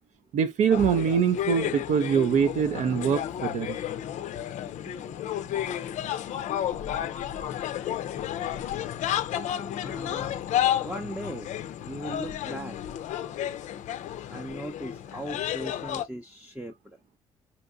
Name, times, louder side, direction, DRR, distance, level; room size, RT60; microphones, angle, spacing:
voice 1, 0.3-3.8 4.1-4.2 6.5-6.6 9.3-9.5, right 7 dB, 55° right, 0.5 m, -24 dB
sound 1, 0.7-16.0, left 11 dB, 55° left, 0.5 m, -32 dB
voice 2, 4.8-5.8 9.8-10.3 10.8-11.5 11.8-12.8 14.3-17.0, right 1 dB, 10° right, 0.6 m, -39 dB
4.3 x 2.8 x 2.2 m
figure-of-eight pair, 45°, 15 cm